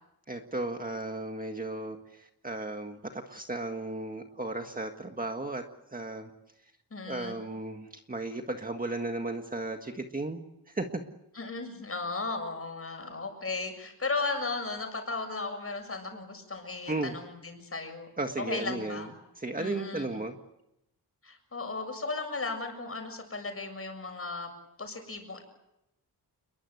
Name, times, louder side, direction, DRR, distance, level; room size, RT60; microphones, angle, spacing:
voice 1, 0.3-6.3 7.1-10.4 10.7-11.0 16.1-16.2 16.9-17.1 18.2-19.1 19.4-20.4, right 2 dB, 20° right, 4 dB, 1.7 m, -35 dB
voice 2, 6.9-7.4 11.4-18.1 18.4-19.1 19.6-20.1 21.2-24.5 24.8-25.4, left 3 dB, 35° left, 5 dB, 7.1 m, -35 dB
30.0 x 22.0 x 8.1 m, 0.84 s
wide cardioid pair, 175°, 40 cm